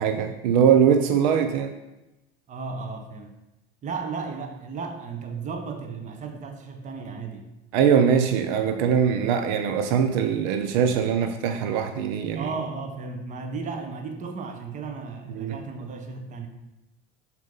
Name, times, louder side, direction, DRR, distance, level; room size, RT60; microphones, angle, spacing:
voice 1, 0.0-1.7 7.7-12.5 15.3-15.5, right 7 dB, 50° right, 8 dB, 0.5 m, -22 dB
voice 2, 2.5-3.3 3.8-7.5 12.3-16.5, right 4 dB, 25° right, 5 dB, 0.8 m, -34 dB
6.0 x 4.0 x 5.5 m, 0.97 s
figure-of-eight pair, 75°, 31 cm